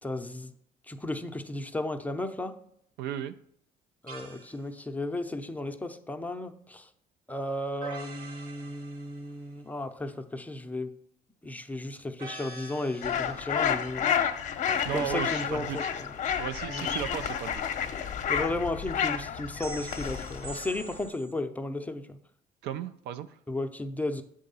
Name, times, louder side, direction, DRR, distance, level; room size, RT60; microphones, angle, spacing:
voice 1, 0.0-0.5 0.9-2.5 4.0-6.9 7.3-10.9 11.4-14.1 14.9-16.1 16.7-17.0 18.3-22.2 23.5-24.2, left 2 dB, 10° left, 6 dB, 0.5 m, -34 dB
voice 2, 3.0-3.3 14.8-15.9 16.4-17.6 22.6-23.4, right 10 dB, 80° right, 11 dB, 0.5 m, -35 dB
sound 1, 4.1-4.6 7.8-9.5 12.2-13.6 16.6-18.1 19.6-21.3, right 2 dB, 60° right, 1.1 m, -45 dB
sound 2, 13.0-21.1, left 8 dB, 45° left, 0.7 m, -31 dB
7.8 x 3.7 x 5.4 m, 0.68 s
cardioid pair, 110°, 17 cm